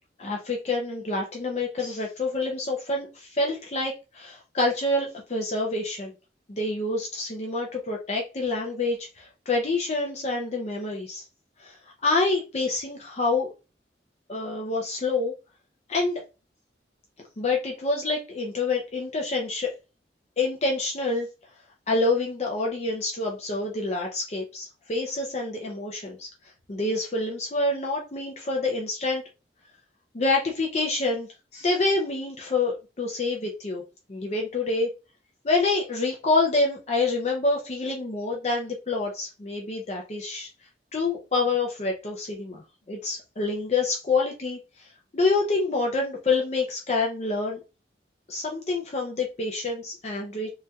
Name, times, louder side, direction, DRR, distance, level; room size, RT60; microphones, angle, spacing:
voice 1, 0.2-6.1 6.5-11.3 11.6-11.8 12.0-13.5 14.3-15.3 15.9-16.2 17.4-19.7 20.4-21.3 21.9-26.3 26.7-29.2 30.1-33.8 34.1-34.9 35.4-40.5 40.9-47.6 48.3-50.5, left 3 dB, 40° left, 0 dB, 0.5 m, -27 dB
3.2 x 2.7 x 2.3 m, 0.29 s
head